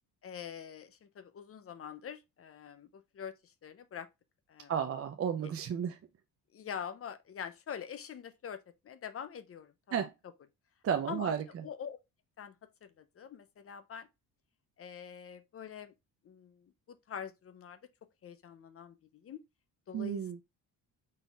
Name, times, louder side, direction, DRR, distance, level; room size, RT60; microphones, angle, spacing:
voice 1, 0.2-4.1 4.5-4.7 6.5-9.7 10.0-10.1 11.1-11.3 11.6-12.0 12.4-12.5 12.8-14.1 14.8-15.9 16.2-17.8 18.2-19.0 19.2-19.4 19.9-20.2, left 8 dB, 35° left, 0.5 m, -44 dB
voice 2, 4.7-6.0 9.9-10.1 10.8-11.6 19.9-20.4, right 8 dB, 35° right, 0.4 m, -33 dB
4.0 x 3.9 x 2.3 m
cardioid pair, 125°, 40 cm